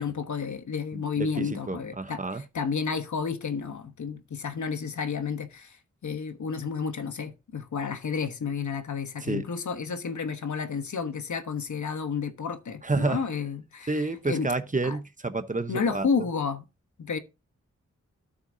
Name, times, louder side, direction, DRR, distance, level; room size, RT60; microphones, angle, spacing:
voice 1, 0.0-14.0 14.3-14.5 14.8-15.0 15.7-16.6 17.0-17.2, left 5 dB, 80° left, 1.2 m, -31 dB
voice 2, 0.9-2.4 9.2-9.5 12.8-13.2 13.9-16.1, right 3 dB, 25° right, 1.0 m, -29 dB
12.5 x 6.8 x 2.7 m
cardioid pair, 60°, 29 cm